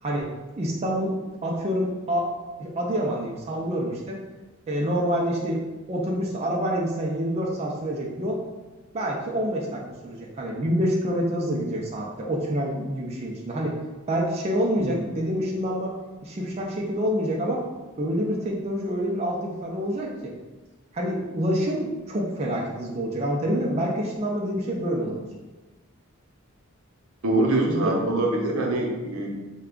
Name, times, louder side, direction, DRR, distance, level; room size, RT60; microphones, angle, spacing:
voice 1, 0.6-1.1 1.4-2.3 2.6-4.2 4.7-5.6 5.9-8.4 8.9-13.8 14.1-15.9 16.2-17.6 18.0-20.3 20.9-25.3 27.7-28.0, equal, 30° right, -2 dB, 0.4 m, -27 dB
voice 2, 27.2-29.3, right 2 dB, 80° right, 0 dB, 0.7 m, -24 dB
3.3 x 2.2 x 3.7 m, 1.2 s
head